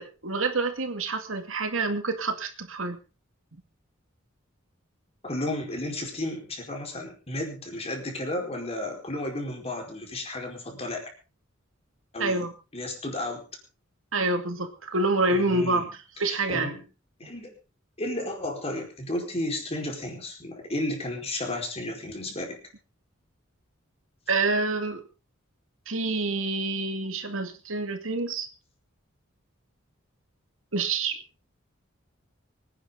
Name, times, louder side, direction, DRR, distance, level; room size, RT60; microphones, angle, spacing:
voice 1, 0.0-3.0 12.2-12.5 14.1-15.8 16.2-16.7 24.3-25.0 25.9-28.5 30.7-31.2, right 3 dB, 80° right, 6 dB, 2.2 m, -27 dB
voice 2, 5.2-11.1 12.1-12.4 12.7-13.4 15.3-15.9 16.2-16.8 17.2-17.5 18.0-22.6, left 1 dB, 30° left, 2 dB, 4.7 m, -33 dB
25.0 x 10.0 x 3.9 m, 0.33 s
head